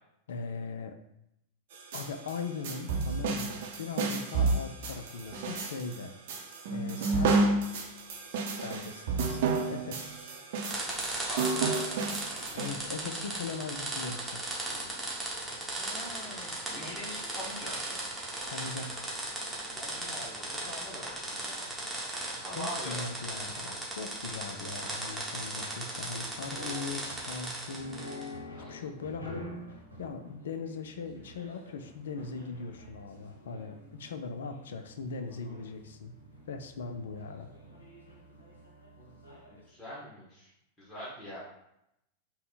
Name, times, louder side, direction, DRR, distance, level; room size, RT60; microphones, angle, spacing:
voice 1, 0.3-0.9 1.9-6.1 6.7-7.5 8.6-10.2 12.5-14.4 18.4-19.1 22.5-28.4 28.7-36.1 36.5-37.5, left 4 dB, 65° left, 7 dB, 0.3 m, -40 dB
sound 1, 1.7-12.7, right 3 dB, 55° right, 0.6 m, -31 dB
sound 2, 10.5-28.3, right 1 dB, 5° right, 0.9 m, -37 dB
voice 2, 11.3-11.8 15.8-18.0 19.6-21.6 22.1-23.0 28.5-28.9 39.0-39.1 39.6-40.5 40.8-41.4, equal, 15° left, -10 dB, 1.3 m, -44 dB
sound 3, 26.4-39.6, left 1 dB, 80° left, 0.8 m, -48 dB
3.6 x 2.1 x 3.9 m, 0.82 s
figure-of-eight pair, 90°, 0 cm